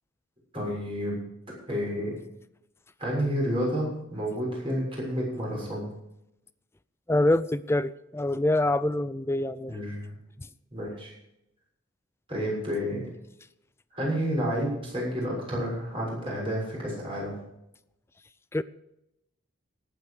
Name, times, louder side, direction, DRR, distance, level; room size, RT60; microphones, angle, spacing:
voice 1, 0.5-1.2 1.7-2.2 3.0-5.9 9.7-10.1 10.7-11.1 12.3-13.0 13.9-17.4, equal, 25° right, -3 dB, 6.7 m, -30 dB
voice 2, 7.1-9.8 18.5-18.6, left 1 dB, 10° left, 16 dB, 0.4 m, -25 dB
18.0 x 8.9 x 4.9 m, 0.84 s
head